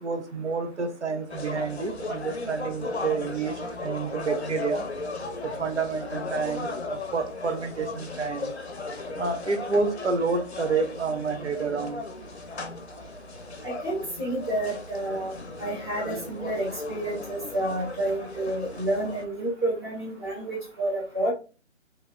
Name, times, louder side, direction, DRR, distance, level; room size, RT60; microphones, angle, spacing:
voice 1, 0.0-3.5 3.8-4.8 5.6-8.5 9.2-12.0, right 4 dB, 65° right, 6 dB, 0.7 m, -29 dB
sound 1, 1.3-19.2, left 3 dB, 55° left, 0.6 m, -36 dB
voice 2, 13.6-15.3 15.6-21.3, right 1 dB, 20° right, -7 dB, 1.1 m, -29 dB
2.9 x 2.9 x 2.3 m, 0.34 s
figure-of-eight pair, 150°, 38 cm